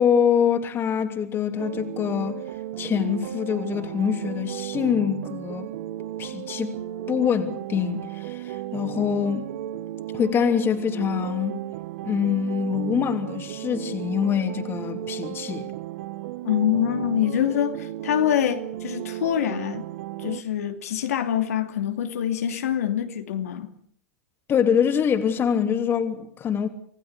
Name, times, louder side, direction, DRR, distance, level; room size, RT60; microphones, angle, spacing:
voice 1, 0.0-2.4 2.8-5.7 6.2-6.7 7.1-9.5 10.1-11.6 12.0-15.7 24.5-26.7, left 8 dB, 30° left, 3.0 m, -24 dB
sound 1, 1.6-20.4, right 13 dB, 65° right, 1.3 m, -34 dB
voice 2, 16.4-19.8 20.2-23.7, left 10 dB, 85° left, 2.8 m, -25 dB
26.5 x 17.0 x 8.3 m
hypercardioid pair, 125°, 8 cm